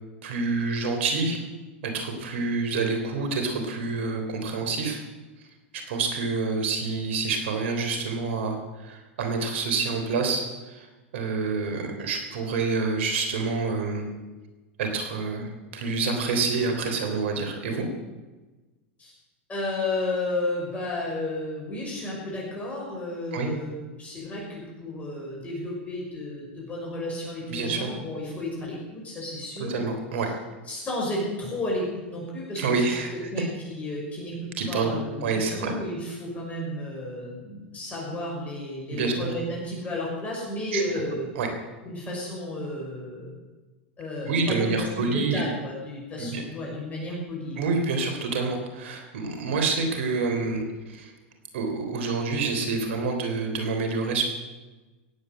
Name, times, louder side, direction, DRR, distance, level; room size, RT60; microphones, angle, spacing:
voice 1, 0.2-1.4 1.8-5.0 5.9-10.9 11.1-14.1 14.8-17.9 23.3-23.5 27.5-27.9 29.7-30.3 32.6-33.1 34.6-35.7 38.9-39.3 40.7-40.8 41.4-41.5 44.3-45.4 46.2-46.4 47.6-51.1 51.5-54.2, right 4 dB, 75° right, 5 dB, 3.5 m, -27 dB
voice 2, 19.5-23.7 24.0-29.7 30.7-41.3 41.8-43.3 44.0-47.7, left 1 dB, 20° left, -3 dB, 5.8 m, -32 dB
17.0 x 8.7 x 7.9 m, 1.2 s
hypercardioid pair, 110°, 7 cm